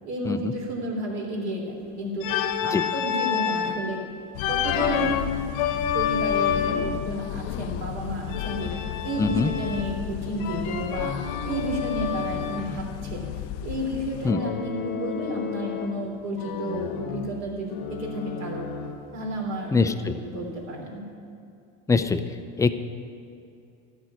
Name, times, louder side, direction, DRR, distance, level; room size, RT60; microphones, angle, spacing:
voice 1, 0.0-2.3 2.6-4.0 4.5-5.1 5.9-8.7 9.0-11.2 11.4-13.2 13.6-18.7 19.1-19.8 20.0-21.0, right 1 dB, 45° right, 0 dB, 3.5 m, -32 dB
Organ, 2.2-3.8 4.4-7.0 8.3-10.0 10.4-12.7 14.3-16.1 16.4-19.1, left 8 dB, 60° left, 1.1 m, -29 dB
sound 1, 4.3-14.3, left 13 dB, 75° left, 0.5 m, -35 dB
voice 2, 9.2-9.5 14.2-14.4 19.7-20.1 21.9-22.7, left 4 dB, 10° left, 8 dB, 0.5 m, -23 dB
12.5 x 6.3 x 9.6 m, 2.5 s
supercardioid pair, 110°, 36 cm